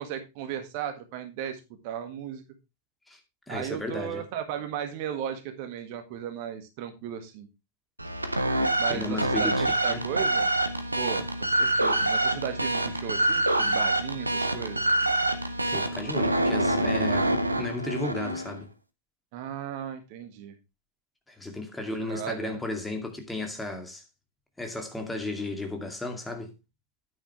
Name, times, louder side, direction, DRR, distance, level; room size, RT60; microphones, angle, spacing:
voice 1, 0.0-2.4 3.5-7.5 8.8-10.5 11.0-14.9 19.3-20.5 21.8-22.6, right 9 dB, 45° right, 1.7 m, -36 dB
voice 2, 3.5-4.2 8.9-10.0 15.7-18.7 21.3-24.0 24.6-26.5, left 2 dB, 5° left, 2.3 m, -34 dB
sound 1, 8.0-18.6, right 1 dB, 85° right, 1.1 m, -26 dB
9.9 x 9.3 x 3.2 m
figure-of-eight pair, 90°, 0 cm